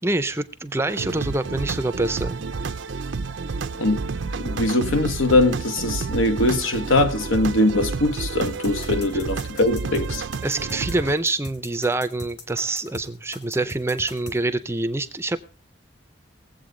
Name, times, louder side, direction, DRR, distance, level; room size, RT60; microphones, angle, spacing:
voice 1, 0.0-2.4 10.4-15.4, right 2 dB, 10° right, 0.5 m, -26 dB
sound 1, 0.9-11.2, right 4 dB, 60° right, 0.5 m, -30 dB
voice 2, 4.3-10.2, left 2 dB, 75° left, 1.1 m, -21 dB
sound 2, 8.4-14.4, left 2 dB, 50° left, 2.3 m, -40 dB
21.0 x 7.9 x 3.7 m
head